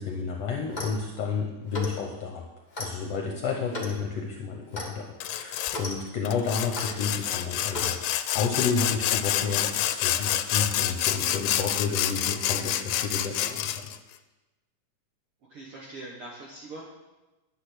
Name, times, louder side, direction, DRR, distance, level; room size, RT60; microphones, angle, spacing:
voice 1, 0.0-2.4 2.8-13.9, left 5 dB, 65° left, 2 dB, 1.9 m, -31 dB
Clock, 0.6-1.0 1.7-2.0 2.7-2.9 3.7-4.0 4.7-4.9 5.7-5.9 6.7-6.9 7.7-8.0, left 1 dB, 25° left, 0.9 m, -35 dB
Sawing, 5.2-5.8 6.3-14.0, left 12 dB, 85° left, 2.1 m, -28 dB
voice 2, 15.5-16.8, right 2 dB, 55° right, -3 dB, 2.0 m, -42 dB
10.5 x 8.5 x 6.3 m, 1.1 s
omnidirectional pair, 3.5 m